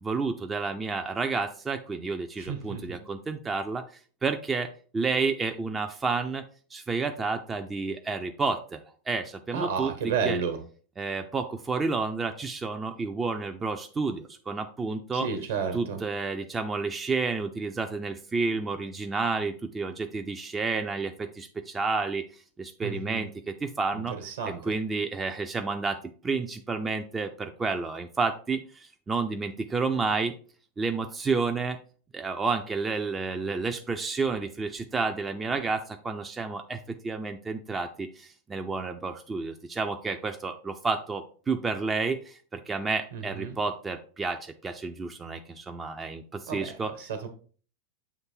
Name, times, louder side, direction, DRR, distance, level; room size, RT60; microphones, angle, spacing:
voice 1, 0.0-3.8 4.2-6.4 6.7-8.8 9.1-10.4 11.0-15.3 15.7-22.2 22.6-24.2 24.4-30.3 30.8-31.8 32.1-46.9, right 4 dB, 15° right, 5 dB, 0.4 m, -30 dB
voice 2, 2.4-3.0 9.5-10.6 15.1-16.0 22.8-23.2 23.9-24.7 43.1-43.6 46.5-47.3, right 6 dB, 60° right, 7 dB, 1.2 m, -32 dB
7.2 x 3.2 x 4.4 m, 0.41 s
figure-of-eight pair, 90°, 0 cm